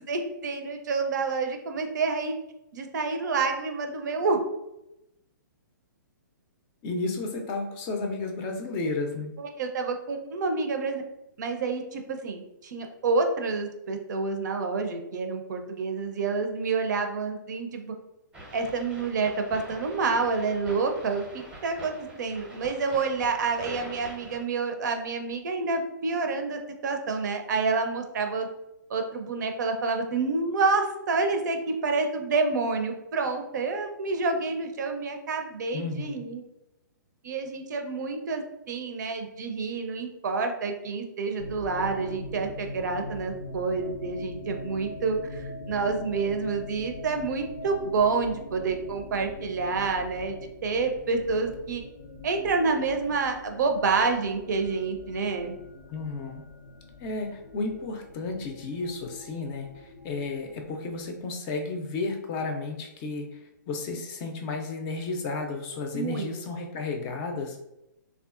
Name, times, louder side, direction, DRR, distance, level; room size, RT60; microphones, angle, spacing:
voice 1, 0.0-2.3 2.7-4.4 9.4-11.0 11.4-17.9 18.5-21.9 22.2-28.5 28.9-36.4 37.2-50.4 50.6-51.8 52.2-55.6 65.9-66.3, right 4 dB, 60° right, 5 dB, 0.5 m, -28 dB
voice 2, 6.8-9.3 35.7-36.2 55.9-56.4 57.0-67.6, left 3 dB, 30° left, 3 dB, 0.5 m, -33 dB
sound 1, 18.3-24.4, right 1 dB, 10° right, 0.7 m, -45 dB
sound 2, 41.4-61.2, left 2 dB, 80° left, 0.7 m, -43 dB
3.6 x 2.3 x 2.4 m, 0.88 s
hypercardioid pair, 135°, 11 cm